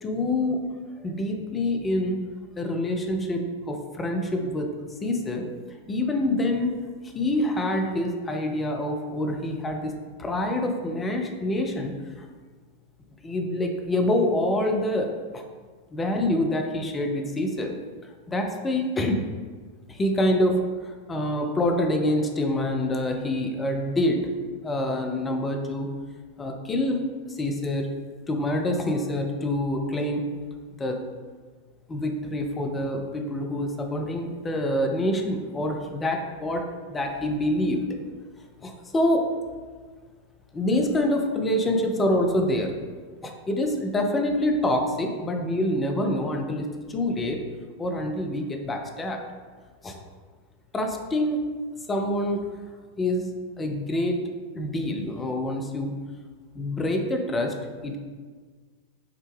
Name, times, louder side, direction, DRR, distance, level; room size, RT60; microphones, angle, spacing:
voice 1, 0.0-0.6 1.0-2.2 2.6-4.7 5.0-5.5 5.9-6.7 7.0-9.9 10.2-12.2 13.2-15.4 15.9-17.7 18.3-19.2 19.9-24.2 24.6-25.9 26.4-27.9 28.3-30.3 30.8-31.0 31.9-37.8 38.6-39.2 40.5-42.7 43.2-47.4 47.8-49.2 49.8-50.0 50.7-51.5 51.9-52.5 53.0-53.2 53.6-54.2 54.5-56.0 56.5-57.5 57.8-58.0, left 1 dB, 15° left, 3 dB, 0.5 m, -26 dB
5.8 x 2.2 x 3.2 m, 1.5 s
figure-of-eight pair, 90°, 0 cm